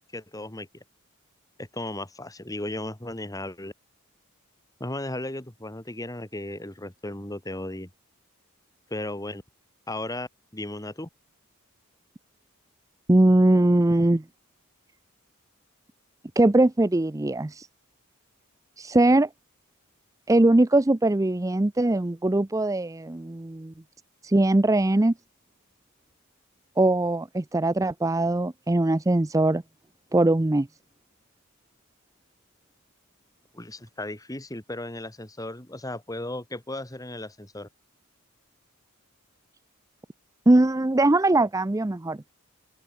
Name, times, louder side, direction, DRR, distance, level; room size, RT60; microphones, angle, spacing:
voice 1, 0.1-0.8 1.6-3.7 4.8-7.9 8.9-9.4 9.9-11.1 33.5-37.7, left 1 dB, 15° left, 2.0 m, -35 dB
voice 2, 13.1-14.2 16.4-17.7 18.8-19.3 20.3-23.7 24.2-25.1 26.8-29.6 30.1-30.7 40.5-42.2, right 2 dB, 15° right, 0.5 m, -21 dB
open air
head